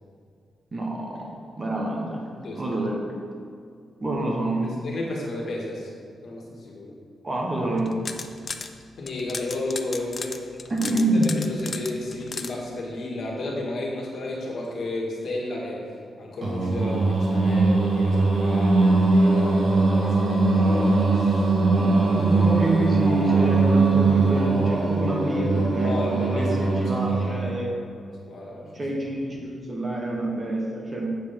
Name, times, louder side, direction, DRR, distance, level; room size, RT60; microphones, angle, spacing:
voice 1, 0.7-2.2 2.5-3.0 4.0-4.8 7.2-8.0 10.7-11.3 21.7-27.8 28.7-31.1, right 1 dB, 30° right, -1 dB, 1.3 m, -27 dB
voice 2, 4.6-5.9 6.2-7.0 9.0-10.4 10.8-15.9 16.2-21.6 22.1-22.5 25.8-27.5 28.0-28.7, left 2 dB, 60° left, -3 dB, 1.8 m, -33 dB
sound 1, 7.8-8.7 9.1-12.5, left 4 dB, 35° left, 0.5 m, -34 dB
Singing, 16.4-27.6, right 3 dB, 60° right, 1.4 m, -21 dB
7.8 x 5.1 x 5.2 m, 2.3 s
wide cardioid pair, 130°, 0 cm